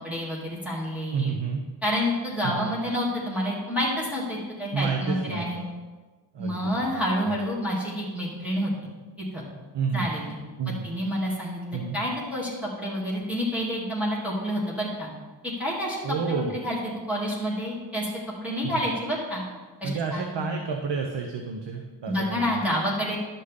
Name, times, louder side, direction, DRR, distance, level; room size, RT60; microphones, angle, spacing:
voice 1, 0.0-1.3 1.8-5.6 6.4-8.7 9.2-9.4 9.9-10.4 10.8-15.1 15.4-16.0 16.3-16.8 17.1-18.1 18.4-19.4 19.8-20.2 22.1-23.2, equal, 5° right, -7 dB, 2.9 m, -28 dB
voice 2, 1.1-1.6 2.4-2.7 4.7-5.7 6.3-7.3 9.7-10.1 10.6-10.9 11.7-12.0 16.0-16.6 18.6-18.8 19.8-22.7, right 5 dB, 70° right, 3 dB, 0.9 m, -30 dB
11.5 x 6.4 x 3.8 m, 1.3 s
cardioid pair, 60°, 44 cm